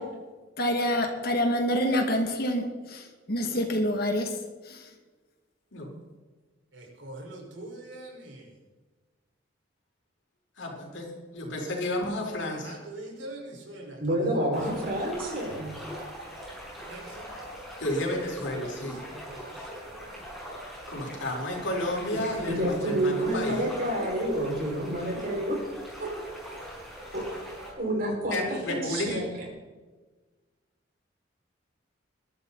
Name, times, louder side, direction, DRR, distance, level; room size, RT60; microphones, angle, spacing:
voice 1, 0.6-4.3 4.7-4.8, equal, 55° left, 4 dB, 2.6 m, -27 dB
voice 2, 6.7-8.5 12.6-14.5 14.7-14.9 16.9-17.3 17.9-18.1 18.6-20.1, right 1 dB, 90° right, -1 dB, 5.8 m, -44 dB
voice 3, 10.6-11.1 11.3-12.8 17.8-19.0 20.9-23.7 28.3-29.2, left 1 dB, 90° left, -1 dB, 5.0 m, -31 dB
voice 4, 14.0-15.8 22.1-22.2 22.5-25.6 26.0-26.1 27.1-27.2 27.8-29.3, right 1 dB, 50° right, -2 dB, 6.1 m, -29 dB
sound 1, 14.5-27.7, equal, ahead, 6.5 m, -42 dB
22.0 x 13.0 x 4.3 m, 1.3 s
head